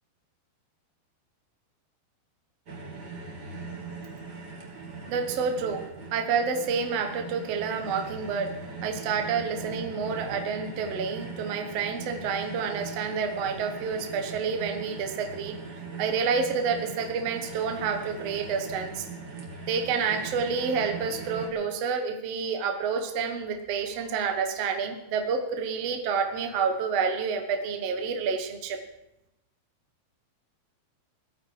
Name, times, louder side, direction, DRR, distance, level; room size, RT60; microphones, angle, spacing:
sound 1, 2.7-21.5, right 4 dB, 30° right, 2.3 m, -40 dB
voice 1, 5.1-5.8 6.1-15.6 16.0-19.1 19.7-28.8, right 5 dB, 60° right, 5 dB, 1.7 m, -29 dB
18.5 x 14.0 x 4.9 m, 0.88 s
omnidirectional pair, 4.5 m